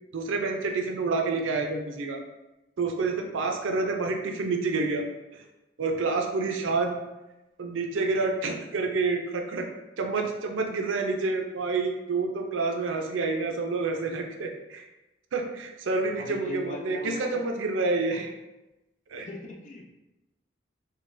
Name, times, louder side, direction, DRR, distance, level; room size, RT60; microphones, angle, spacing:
voice 1, 0.1-2.2 2.8-5.0 5.3-5.4 5.8-6.9 7.6-9.7 10.0-14.9 15.3-18.3 19.1-19.3, right 3 dB, 80° right, 2 dB, 0.4 m, -28 dB
voice 2, 16.2-17.5 18.1-18.3 19.2-19.9, left 2 dB, 40° left, 1 dB, 0.4 m, -39 dB
3.9 x 2.1 x 2.5 m, 1.0 s
head